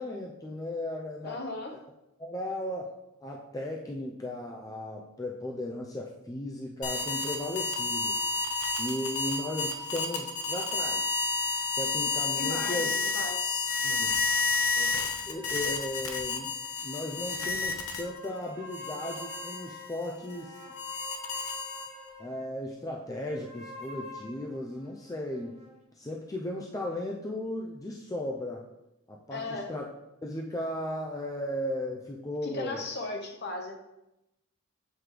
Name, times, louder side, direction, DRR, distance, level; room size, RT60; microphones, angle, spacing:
voice 1, 0.0-1.4 1.7-1.8 2.2-3.0 3.2-8.2 8.8-11.2 11.8-12.9 13.8-14.2 14.8-16.5 16.8-20.6 22.2-25.6 25.9-28.6 29.1-29.8 30.2-32.8, left 1 dB, 15° left, -1 dB, 0.4 m, -36 dB
voice 2, 1.2-1.7 12.4-13.7 29.3-29.7 32.4-33.7, left 2 dB, 45° left, 3 dB, 0.9 m, -37 dB
sound 1, 6.8-18.3 18.7-22.1, left 3 dB, 75° left, 0.9 m, -31 dB
sound 2, 15.3-17.3 17.7-22.5 23.2-25.8, left 1 dB, 30° right, 0.8 m, -46 dB
7.7 x 3.1 x 4.9 m, 0.89 s
head